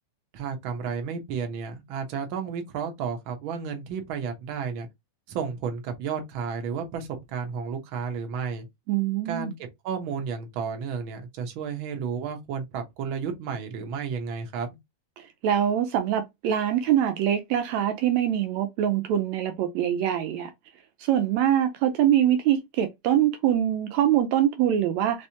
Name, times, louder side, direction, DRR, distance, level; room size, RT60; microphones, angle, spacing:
voice 1, 0.3-4.9 5.3-8.7 9.2-9.5 9.8-14.8, right 6 dB, 60° right, 1.4 m, -32 dB
voice 2, 8.9-9.5 15.4-20.5 21.0-25.3, right 10 dB, 80° right, 1.8 m, -24 dB
4.3 x 3.3 x 2.8 m
omnidirectional pair, 3.4 m